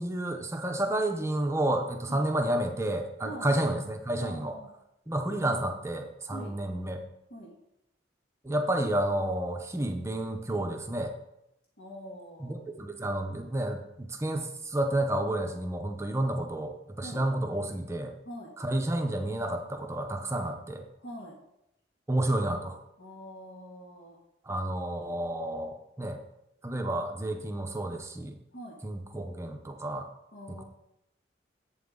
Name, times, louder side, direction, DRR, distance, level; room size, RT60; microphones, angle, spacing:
voice 1, 0.0-4.6 5.1-7.0 8.4-11.1 12.4-18.1 18.6-20.8 22.1-22.8 24.5-26.2 26.6-28.4 28.8-30.1, right 1 dB, 15° right, 4 dB, 0.6 m, -30 dB
voice 2, 3.2-3.6 4.2-4.7 6.3-6.5 7.3-7.5 11.8-12.6 17.0-17.2 18.2-18.5 21.0-21.4 23.0-24.2 28.5-28.8 30.3-30.6, equal, 65° left, -3 dB, 1.6 m, -44 dB
7.7 x 7.6 x 3.7 m, 0.82 s
head